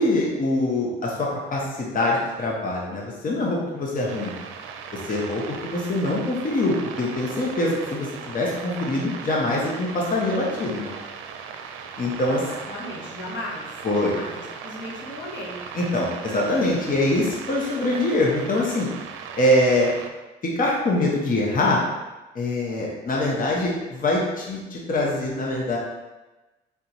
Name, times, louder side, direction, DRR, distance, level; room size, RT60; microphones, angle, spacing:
voice 1, 0.0-4.3 4.9-10.9 12.0-12.4 13.8-14.1 15.8-18.9 19.3-19.9 20.4-21.8 22.3-25.8, left 1 dB, 45° left, -3 dB, 1.0 m, -24 dB
sound 1, 4.1-20.1, right 6 dB, 90° right, 0.5 m, -38 dB
voice 2, 12.3-15.6, left 1 dB, 65° left, -3 dB, 1.1 m, -36 dB
4.0 x 4.0 x 3.0 m, 1.1 s
cardioid pair, 90°, 20 cm